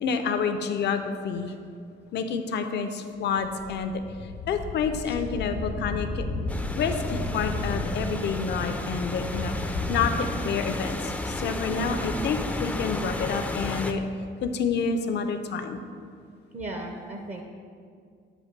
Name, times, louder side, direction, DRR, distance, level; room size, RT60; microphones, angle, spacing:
voice 1, 0.0-1.5 2.1-3.9 4.5-6.3 6.7-14.0 14.4-15.8, left 5 dB, 60° left, 7 dB, 0.5 m, -28 dB
sound 1, 3.4-10.2, left 2 dB, 85° left, 0.8 m, -33 dB
sound 2, 6.5-13.9, left 1 dB, 5° left, 0.4 m, -33 dB
voice 2, 16.5-17.4, right 2 dB, 35° right, 2 dB, 0.6 m, -36 dB
7.7 x 2.6 x 5.9 m, 2.2 s
cardioid pair, 90°, 20 cm